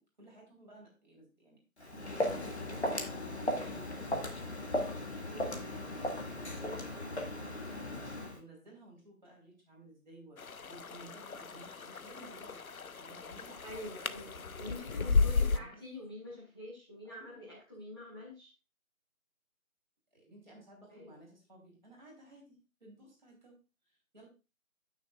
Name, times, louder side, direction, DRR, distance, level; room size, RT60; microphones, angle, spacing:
voice 1, 0.0-2.9 3.6-4.6 5.5-7.9 8.3-14.0 14.6-15.8 17.0-17.5 20.1-23.6 23.9-24.3, right 1 dB, 30° right, -2 dB, 3.4 m, -56 dB
Walk footsteps, 1.8-8.4, left 1 dB, 50° left, 1.6 m, -37 dB
voice 2, 5.3-5.6 13.6-18.5 20.9-21.2, left 1 dB, 15° left, -8 dB, 1.6 m, -46 dB
sound 1, 10.4-15.6, left 4 dB, 80° left, 0.8 m, -34 dB
13.5 x 6.5 x 2.4 m, 0.29 s
figure-of-eight pair, 170°, 42 cm